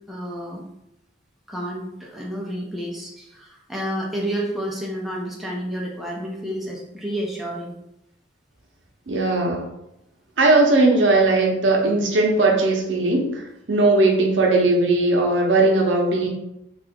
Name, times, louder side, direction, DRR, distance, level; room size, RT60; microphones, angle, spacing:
voice 1, 0.1-0.6 1.5-7.7, equal, ahead, -3 dB, 0.4 m, -30 dB
voice 2, 9.1-9.6 10.4-16.3, right 2 dB, 70° right, 0 dB, 0.7 m, -18 dB
2.7 x 2.4 x 3.5 m, 0.84 s
head